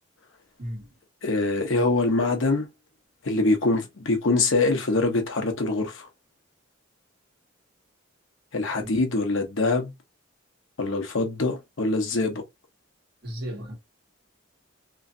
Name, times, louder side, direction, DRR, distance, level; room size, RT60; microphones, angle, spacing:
voice 1, 1.2-2.7 3.2-6.1 8.5-9.9 10.8-12.4, left 3 dB, 65° left, 0.8 m, -24 dB
voice 2, 13.2-13.7, equal, 55° right, 1.4 m, -35 dB
3.1 x 2.5 x 2.6 m
head